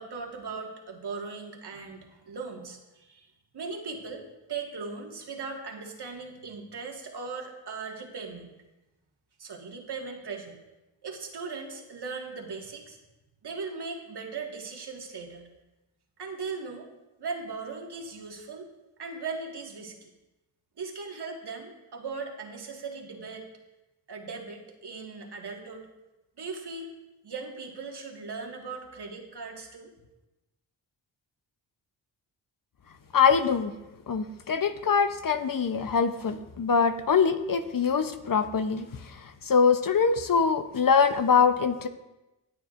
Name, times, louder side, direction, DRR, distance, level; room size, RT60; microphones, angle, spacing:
voice 1, 0.0-4.2 4.5-8.5 9.4-10.6 11.0-13.0 13.4-15.5 16.2-16.9 17.2-18.7 19.0-20.0 20.8-23.5 24.1-25.9 26.4-26.9 27.2-29.9, right 4 dB, 55° right, 1 dB, 2.0 m, -38 dB
voice 2, 33.1-33.7 34.1-41.9, left 6 dB, 45° left, 9 dB, 0.8 m, -24 dB
18.5 x 6.8 x 2.6 m, 1.0 s
supercardioid pair, 40°, 46 cm